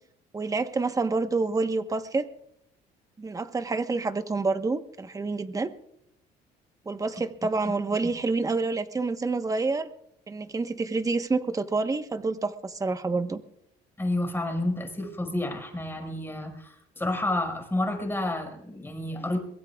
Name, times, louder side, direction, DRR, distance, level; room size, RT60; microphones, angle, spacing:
voice 1, 0.3-2.3 3.2-5.7 6.8-9.9 10.3-13.4, right 3 dB, 20° right, 9 dB, 1.1 m, -28 dB
voice 2, 14.0-19.4, left 1 dB, 15° left, 3 dB, 5.3 m, -30 dB
23.0 x 21.5 x 2.4 m, 0.75 s
cardioid pair, 110°, 17 cm